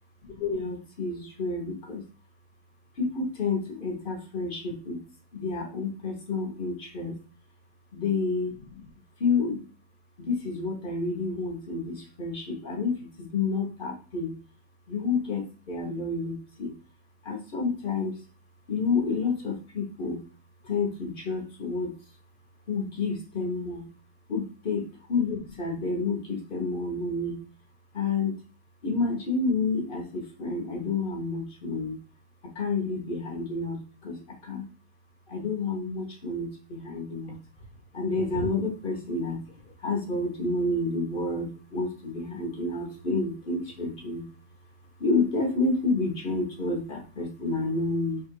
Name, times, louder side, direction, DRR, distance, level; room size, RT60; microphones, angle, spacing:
voice 1, 0.2-2.0 3.0-5.0 5.3-7.2 7.9-8.9 9.2-9.6 10.2-14.3 14.9-16.7 17.2-18.2 18.7-20.2 20.6-21.9 22.7-23.9 24.3-27.4 27.9-28.4 28.8-32.0 32.4-34.7 35.3-37.4 37.9-44.3 45.0-48.2, left 3 dB, 45° left, 1 dB, 0.7 m, -29 dB
3.7 x 2.4 x 4.5 m, 0.34 s
omnidirectional pair, 2.0 m